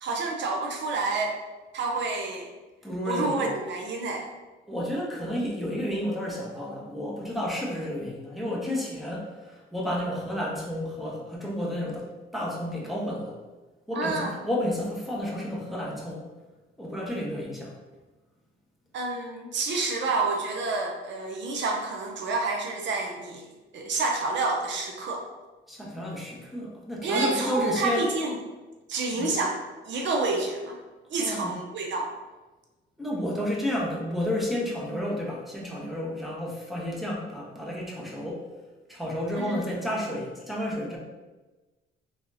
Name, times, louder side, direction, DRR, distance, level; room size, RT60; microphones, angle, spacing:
voice 1, 0.0-1.4 1.7-2.5 3.0-4.3 13.9-14.3 18.9-25.2 27.0-28.3 28.9-29.6 29.9-30.8 31.1-32.2 39.4-39.6, right 3 dB, 65° right, 1 dB, 0.7 m, -29 dB
voice 2, 2.8-3.5 4.7-13.4 13.9-16.2 16.8-17.7 25.7-28.0 29.1-29.3 31.2-31.5 33.0-38.4 38.9-41.0, left 1 dB, ahead, -4 dB, 1.1 m, -31 dB
3.5 x 3.5 x 2.7 m, 1.2 s
cardioid pair, 90°, 20 cm